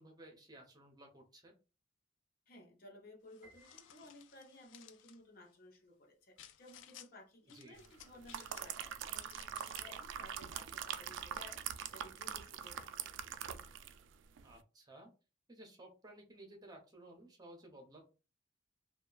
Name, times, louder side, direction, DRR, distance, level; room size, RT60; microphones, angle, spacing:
voice 1, 0.0-1.5 7.4-7.8 14.4-15.1 15.5-18.1, right 1 dB, 20° right, 2 dB, 0.7 m, -56 dB
voice 2, 2.5-11.6 11.9-13.1, left 1 dB, 55° left, 2 dB, 0.8 m, -57 dB
sound 1, 3.3-5.2 6.4-7.1 7.5-8.9 9.2-10.0, left 10 dB, 80° left, 0.3 m, -58 dB
Piano, 3.4-4.7, equal, 5° right, 1.2 m, -65 dB
sound 2, 8.0-14.0 14.4-14.5, right 9 dB, 90° right, 0.3 m, -43 dB
2.8 x 2.3 x 2.4 m, 0.31 s
head